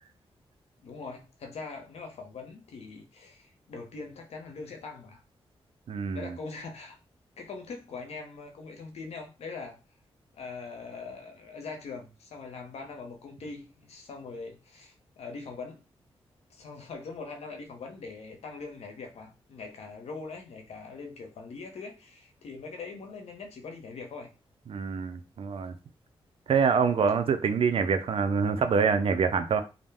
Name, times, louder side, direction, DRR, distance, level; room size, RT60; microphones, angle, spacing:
voice 1, 0.8-5.2 6.1-7.0 7.4-9.8 10.3-15.8 16.5-24.3, left 4 dB, 80° left, 0.7 m, -42 dB
voice 2, 5.9-6.3 24.7-25.7 26.5-29.6, right 5 dB, 60° right, 0.4 m, -25 dB
2.5 x 2.1 x 3.3 m
cardioid pair, 65°, 11 cm